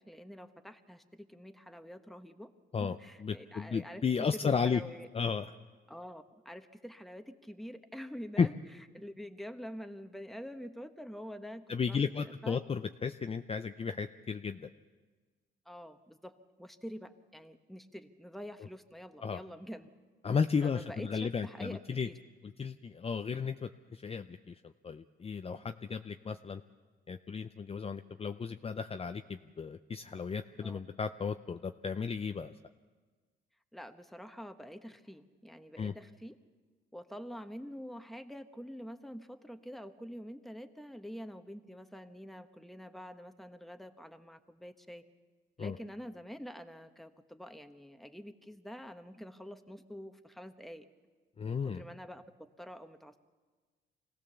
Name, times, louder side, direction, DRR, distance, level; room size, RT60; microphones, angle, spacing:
voice 1, 0.0-2.5 2.8-4.0 4.4-5.1 5.9-8.5 8.9-12.6 15.6-19.9 20.6-22.1 30.6-30.8 33.7-36.4 36.9-45.0 45.6-50.9 51.4-52.2 52.6-53.2, equal, ahead, 7 dB, 1.2 m, -46 dB
voice 2, 3.2-4.8 5.1-5.5 8.4-8.5 11.7-14.7 19.2-19.4 20.2-22.1 22.6-24.5 24.8-26.6 27.1-32.5 35.8-35.9 45.6-45.8 51.4-51.8, left 6 dB, 30° left, 8 dB, 0.6 m, -34 dB
25.0 x 17.0 x 7.0 m, 1.4 s
cardioid pair, 90°, 20 cm